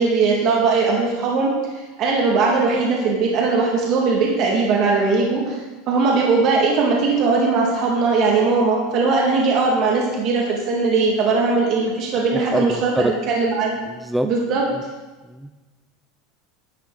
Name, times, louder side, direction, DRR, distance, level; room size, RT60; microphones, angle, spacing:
voice 1, 0.0-5.6 5.9-13.7 14.2-14.6, right 4 dB, 45° right, -2 dB, 2.2 m, -19 dB
voice 2, 12.5-13.1 13.9-14.3 15.3-15.5, right 1 dB, 5° right, 7 dB, 0.5 m, -24 dB
11.5 x 9.1 x 4.0 m, 1.2 s
supercardioid pair, 135°, 0 cm